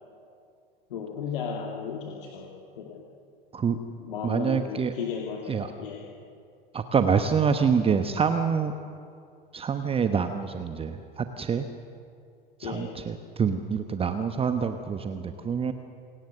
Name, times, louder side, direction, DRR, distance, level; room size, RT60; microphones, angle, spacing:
voice 1, 0.9-2.5 2.8-3.0 4.0-6.1 12.6-12.9 15.1-15.3, left 7 dB, 65° left, 0 dB, 2.6 m, -35 dB
voice 2, 4.2-4.9 5.5-5.7 6.7-8.7 9.5-11.7 12.6-15.7, right 6 dB, 20° right, 8 dB, 1.1 m, -26 dB
28.0 x 18.5 x 6.7 m, 2.4 s
figure-of-eight pair, 85°, 29 cm